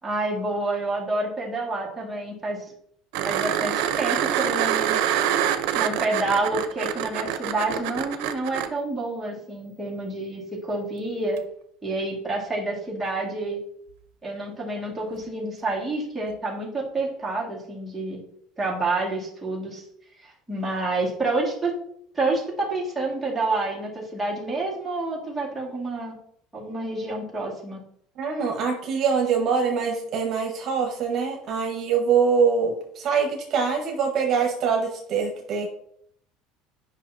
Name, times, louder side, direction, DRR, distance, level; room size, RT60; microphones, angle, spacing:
voice 1, 0.0-2.6 3.2-5.0 5.7-11.4 11.8-13.6 14.2-18.2 18.6-19.8 20.2-21.7 22.1-26.2 26.5-27.8, right 2 dB, 5° right, -6 dB, 2.0 m, -28 dB
sound 1, 3.1-8.7 11.4-11.5, right 10 dB, 75° right, 0.7 m, -25 dB
voice 2, 28.2-35.7, right 6 dB, 45° right, 1 dB, 1.4 m, -24 dB
9.2 x 5.5 x 2.8 m, 0.69 s
cardioid pair, 130°, 0 cm